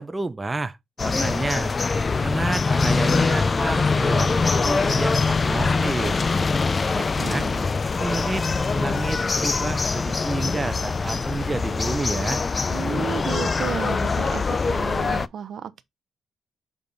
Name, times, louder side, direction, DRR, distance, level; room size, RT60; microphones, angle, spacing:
voice 1, 0.0-1.7 2.2-6.2 6.9-7.5 8.0-12.4, right 3 dB, 20° right, 0.6 m, -30 dB
sound 1, 1.0-15.3, left 4 dB, 35° left, 0.4 m, -23 dB
voice 2, 7.2-7.7 12.7-15.8, right 8 dB, 65° right, 0.6 m, -33 dB
6.8 x 3.5 x 3.9 m
cardioid pair, 85°, 0 cm